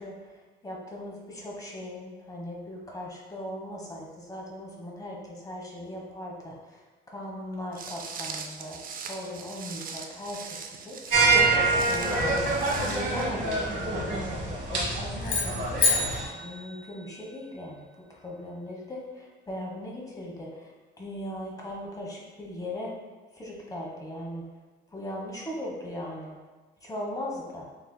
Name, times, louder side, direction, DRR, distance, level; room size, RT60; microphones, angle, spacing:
voice 1, 0.0-11.0 11.7-12.2 12.8-15.8 16.3-22.9 23.3-24.4 24.9-26.4 26.8-27.7, left 1 dB, 20° left, -2 dB, 1.2 m, -39 dB
Walk footsteps, 7.7-13.2, right 5 dB, 45° right, 0.5 m, -40 dB
sound 1, 11.1-16.2, right 3 dB, 60° right, 1.5 m, -26 dB
sound 2, 15.2-17.5, left 4 dB, 70° left, 1.2 m, -29 dB
6.7 x 3.1 x 2.2 m, 1.3 s
cardioid pair, 90°, 20 cm